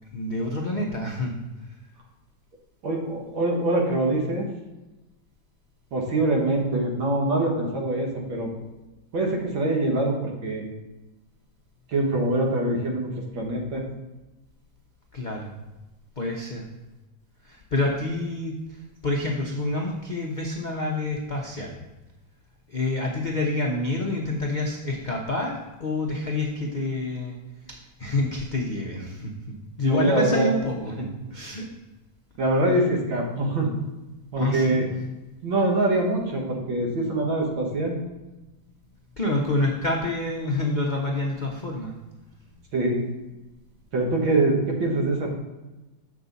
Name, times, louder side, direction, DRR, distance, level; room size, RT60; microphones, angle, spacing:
voice 1, 0.1-1.3 15.1-15.5 16.2-16.7 17.4-21.8 22.7-27.4 27.7-29.3 29.8-31.7 34.3-34.9 39.2-42.2, left 2 dB, 65° left, -1 dB, 0.4 m, -28 dB
voice 2, 2.8-4.5 5.9-8.5 9.1-10.6 11.9-13.8 29.9-30.5 31.0-31.1 32.4-33.8 34.3-34.9 35.4-38.0 42.7-43.0 43.9-45.4, right 2 dB, 85° right, 0 dB, 2.2 m, -24 dB
7.5 x 6.0 x 4.0 m, 1.1 s
omnidirectional pair, 2.1 m